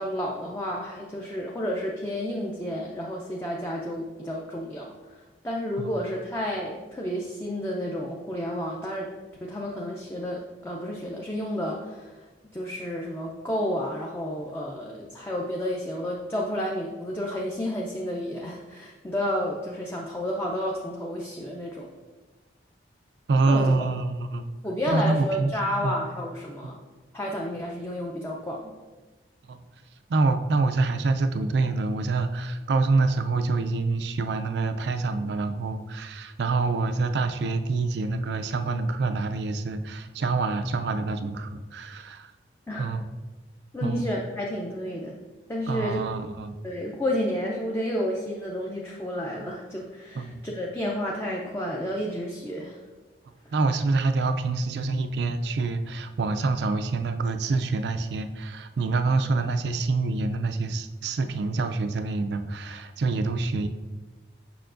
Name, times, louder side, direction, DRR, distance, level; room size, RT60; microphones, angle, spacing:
voice 1, 0.0-5.1 5.4-9.1 9.4-21.9 23.5-23.7 24.6-26.8 27.1-28.7 42.7-42.8 43.7-45.2 45.5-46.0 46.6-52.8, equal, 15° left, -2 dB, 0.5 m, -31 dB
voice 2, 23.3-24.5 24.9-26.0 26.6-26.7 29.5-29.6 30.1-42.3 42.8-43.1 43.8-44.0 45.7-46.6 50.2-50.4 53.5-63.7, right 3 dB, 65° right, 8 dB, 0.4 m, -26 dB
6.8 x 5.5 x 2.5 m, 1.2 s
head